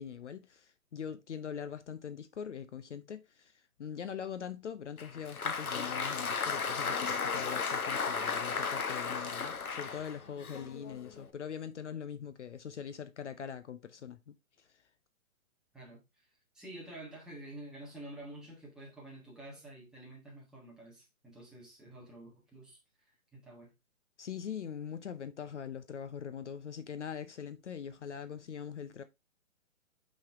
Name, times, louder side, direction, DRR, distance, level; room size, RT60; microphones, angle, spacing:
voice 1, 0.0-14.3 24.2-29.0, left 8 dB, 55° left, 0.7 m, -42 dB
Applause, 5.0-11.3, left 5 dB, 90° left, 1.3 m, -35 dB
voice 2, 15.7-16.3 16.5-22.8 23.0-23.7, right 1 dB, ahead, 1.5 m, -49 dB
5.7 x 5.5 x 3.5 m
hypercardioid pair, 160°, 42 cm